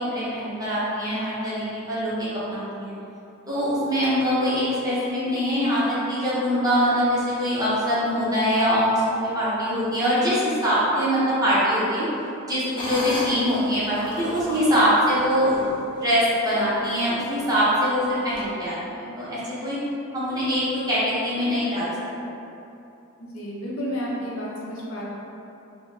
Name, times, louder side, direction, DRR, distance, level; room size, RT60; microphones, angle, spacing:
voice 1, 0.0-2.9 3.5-12.1 12.5-15.6 16.0-19.8 20.1-21.9 22.2-22.3, equal, 15° right, -10 dB, 0.7 m, -23 dB
sound 1, 12.8-16.2 16.7-16.8 17.4-17.7 18.3-18.4, left 1 dB, 20° left, 0.5 m, -34 dB
voice 2, 23.3-25.0, equal, 65° left, -6 dB, 0.6 m, -31 dB
3.8 x 2.0 x 2.6 m, 2.8 s
head